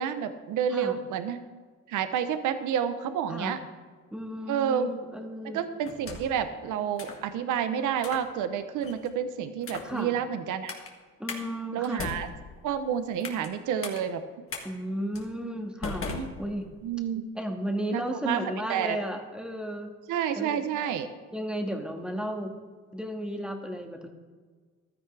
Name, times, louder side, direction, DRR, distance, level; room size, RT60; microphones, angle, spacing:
voice 1, 0.0-1.4 1.9-3.6 4.5-5.0 5.5-10.7 11.7-12.3 12.6-14.2 16.1-16.3 16.8-17.3 17.9-19.0 20.1-21.1, right 8 dB, 85° right, 10 dB, 0.8 m, -29 dB
voice 2, 4.1-5.6 9.8-10.2 11.2-12.1 14.6-16.1 16.4-16.7 17.4-19.9 20.3-20.6 21.3-22.5 22.9-24.1, equal, 5° right, 3 dB, 1.8 m, -34 dB
sound 1, 5.8-6.4 7.0-7.3 8.0-8.3 8.8-9.1 9.6-10.0 10.7-10.9 11.3-11.4 11.8-13.5 13.8-14.0 14.5-14.6 15.1-15.3 15.8-16.9, left 4 dB, 45° left, 2.0 m, -38 dB
15.0 x 12.0 x 3.3 m, 1.5 s
cardioid pair, 90°, 30 cm